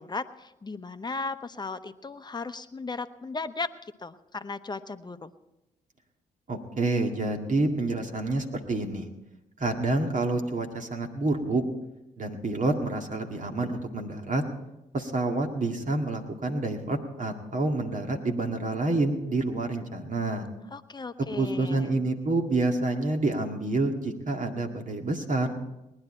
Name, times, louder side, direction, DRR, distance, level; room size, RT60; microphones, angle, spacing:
voice 1, 0.0-5.3 20.7-21.9, left 3 dB, 25° left, 10 dB, 0.9 m, -36 dB
voice 2, 6.5-9.1 9.6-11.6 12.2-14.5 14.9-20.5 21.4-25.6, right 2 dB, 45° right, 3 dB, 2.1 m, -28 dB
19.5 x 10.5 x 4.4 m, 0.94 s
hypercardioid pair, 45°, 18 cm